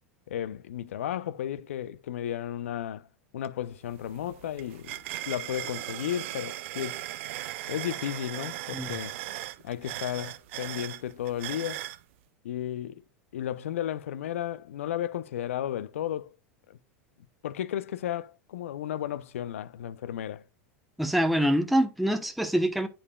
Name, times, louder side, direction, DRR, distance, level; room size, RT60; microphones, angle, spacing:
voice 1, 0.3-3.1 3.3-5.0 5.3-7.0 7.7-9.1 9.6-11.9 12.4-13.0 13.3-16.4 16.7-16.8 17.4-20.4, left 11 dB, 80° left, 0.4 m, -34 dB
sound 1, 3.4-3.5 3.9-12.0, right 15 dB, 65° right, 0.4 m, -38 dB
voice 2, 21.0-22.9, equal, ahead, 0.8 m, -25 dB
8.7 x 4.9 x 2.2 m
hypercardioid pair, 90°, 7 cm